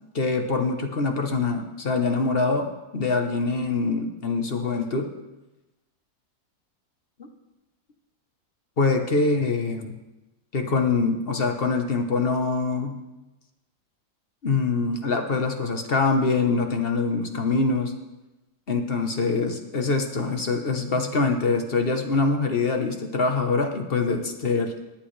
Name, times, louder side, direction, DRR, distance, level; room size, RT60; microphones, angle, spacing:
voice 1, 0.1-5.1 7.2-7.3 8.8-9.9 10.5-13.0 14.4-17.9 18.7-24.7, left 3 dB, 40° left, 5 dB, 1.2 m, -24 dB
18.5 x 8.7 x 3.3 m, 1.0 s
omnidirectional pair, 1.6 m